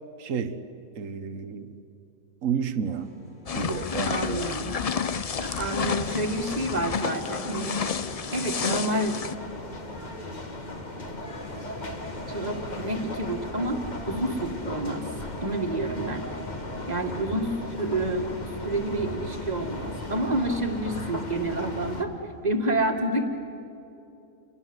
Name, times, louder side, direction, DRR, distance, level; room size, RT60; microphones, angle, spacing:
voice 1, 0.2-0.6 1.0-1.7 2.4-3.1 3.5-4.4, right 7 dB, 65° right, 12 dB, 1.4 m, -30 dB
sound 1, 2.9-22.6, left 2 dB, 85° left, 3.6 m, -46 dB
sound 2, 3.5-9.3, left 6 dB, 50° left, 0.4 m, -30 dB
voice 2, 4.1-4.8 5.4-7.8 8.3-9.1 12.3-15.1 15.4-16.3 16.8-18.3 18.6-22.1 22.4-23.3, right 1 dB, 30° right, 4 dB, 2.1 m, -29 dB
sound 3, 5.3-22.0, left 1 dB, 30° left, 1.8 m, -37 dB
29.0 x 22.5 x 8.1 m, 2.8 s
omnidirectional pair, 1.5 m